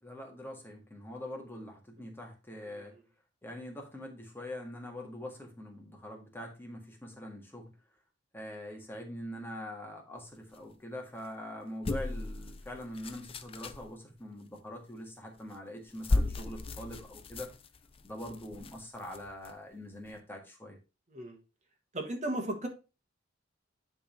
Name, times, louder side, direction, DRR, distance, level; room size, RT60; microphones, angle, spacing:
voice 1, 0.0-2.9 3.4-7.7 8.3-17.5 18.0-20.8, left 1 dB, 10° left, 1 dB, 1.7 m, -43 dB
sound 1, 11.8-13.9 15.4-15.5 15.9-19.5 20.0-20.2, left 2 dB, 30° left, 0.5 m, -35 dB
voice 2, 21.9-22.7, right 1 dB, 40° right, 4 dB, 1.5 m, -34 dB
10.0 x 3.6 x 4.4 m, 0.29 s
head